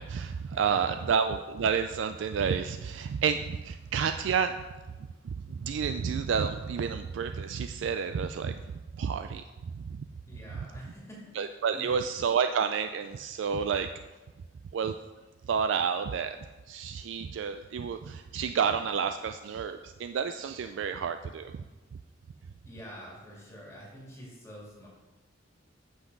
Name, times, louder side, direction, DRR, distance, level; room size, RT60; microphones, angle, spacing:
voice 1, 0.0-4.6 5.2-8.6 9.0-9.4 11.3-13.9 14.7-14.9 15.5-16.4 16.7-21.5, right 6 dB, 75° right, 9 dB, 0.3 m, -30 dB
voice 2, 0.5-1.1 10.3-11.3 11.7-12.0 22.7-24.9, equal, 15° left, -4 dB, 2.0 m, -46 dB
8.1 x 6.0 x 5.3 m, 1.2 s
head